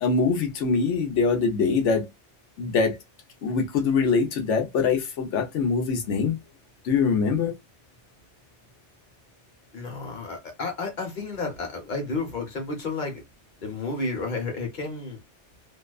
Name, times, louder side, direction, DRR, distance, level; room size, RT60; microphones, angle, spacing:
voice 1, 0.0-2.1 2.6-3.0 3.4-6.4 6.8-7.5, left 5 dB, 85° left, 1.0 m, -23 dB
voice 2, 9.7-13.2 13.6-15.2, left 3 dB, 45° left, 1.0 m, -31 dB
2.7 x 2.1 x 2.3 m
omnidirectional pair, 1.2 m